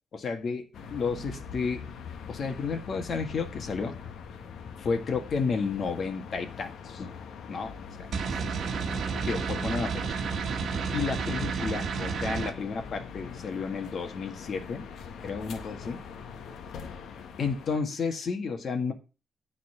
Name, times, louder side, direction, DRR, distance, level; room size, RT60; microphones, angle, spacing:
voice 1, 0.1-1.8 2.3-4.0 4.8-7.2 7.5-8.7 9.3-10.0 10.9-14.9 15.2-16.0 17.4-18.9, left 5 dB, 50° left, 1.7 m, -32 dB
sound 1, 0.7-17.8, left 6 dB, 85° left, 1.2 m, -43 dB
sound 2, 8.1-12.5, right 5 dB, 65° right, 1.3 m, -31 dB
9.5 x 4.2 x 7.2 m
wide cardioid pair, 150°, 0 cm